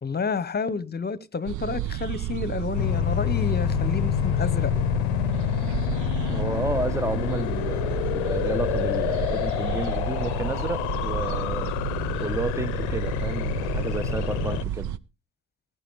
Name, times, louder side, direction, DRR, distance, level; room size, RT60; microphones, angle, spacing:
voice 1, 0.0-4.7, left 5 dB, 25° left, 1.1 m, -29 dB
sound 1, 1.5-15.0, right 11 dB, 50° right, 0.7 m, -31 dB
sound 2, 2.7-14.6, left 17 dB, 75° left, 0.7 m, -28 dB
voice 2, 6.1-11.7 12.2-15.0, right 2 dB, 10° right, 0.8 m, -32 dB
19.5 x 9.1 x 3.2 m
hypercardioid pair, 50°, 37 cm